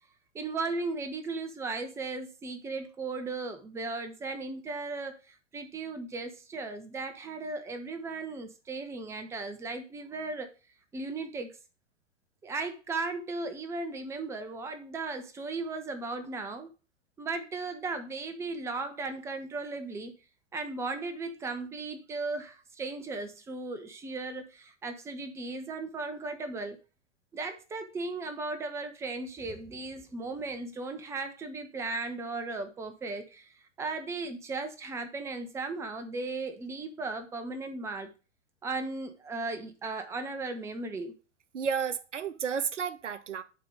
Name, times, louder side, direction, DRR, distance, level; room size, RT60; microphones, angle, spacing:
voice 1, 0.3-10.5 10.9-11.5 12.4-16.7 17.2-20.1 20.5-26.8 27.3-38.1 38.6-41.1, right 3 dB, 5° right, 0.7 m, -36 dB
voice 2, 41.5-43.4, right 7 dB, 70° right, 0.8 m, -32 dB
8.5 x 3.8 x 4.8 m
figure-of-eight pair, 105°, 37 cm